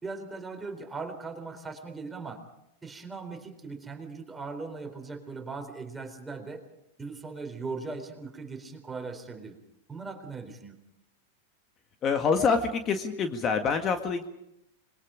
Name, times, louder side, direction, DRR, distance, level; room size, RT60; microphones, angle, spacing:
voice 1, 0.0-2.4 2.8-6.6 7.0-9.6 9.9-10.8, right 4 dB, 15° right, 5 dB, 4.0 m, -39 dB
voice 2, 12.0-14.3, left 5 dB, 30° left, 6 dB, 1.8 m, -26 dB
26.5 x 22.0 x 5.1 m, 0.83 s
hypercardioid pair, 105°, 0 cm